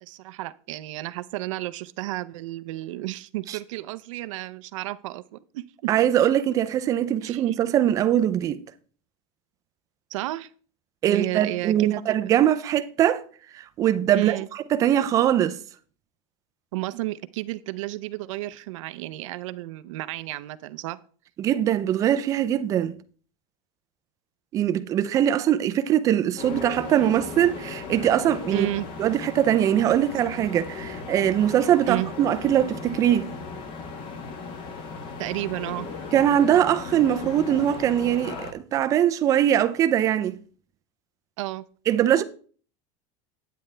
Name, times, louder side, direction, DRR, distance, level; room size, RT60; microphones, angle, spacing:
voice 1, 0.0-5.9 7.2-7.5 10.1-10.5 11.1-12.2 14.1-14.5 16.7-21.0 28.5-28.8 31.8-32.1 35.2-35.9 41.4-41.6, right 18 dB, 70° right, 0.6 m, -32 dB
voice 2, 5.9-8.6 11.0-13.2 13.5-14.4 14.7-15.6 21.4-23.0 24.5-28.7 29.0-33.3 36.1-40.4 41.9-42.2, right 11 dB, 20° right, 0.4 m, -22 dB
sound 1, 26.4-38.5, left 4 dB, 30° left, 1.1 m, -37 dB
9.5 x 9.2 x 3.3 m
supercardioid pair, 180°, 17 cm